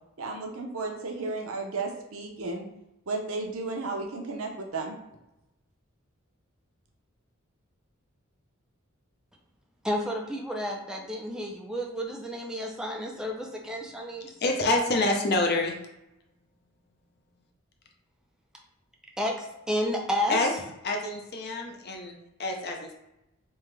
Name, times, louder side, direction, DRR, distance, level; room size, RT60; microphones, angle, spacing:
voice 1, 0.2-2.7 3.1-5.0, right 3 dB, 75° right, 2 dB, 0.7 m, -33 dB
voice 2, 9.8-14.3 19.2-19.4 19.7-20.4, equal, 5° right, 0 dB, 0.6 m, -31 dB
voice 3, 14.4-15.7 20.3-20.5 20.8-22.9, left 2 dB, 50° left, 2 dB, 0.6 m, -27 dB
3.5 x 3.0 x 3.3 m, 0.87 s
head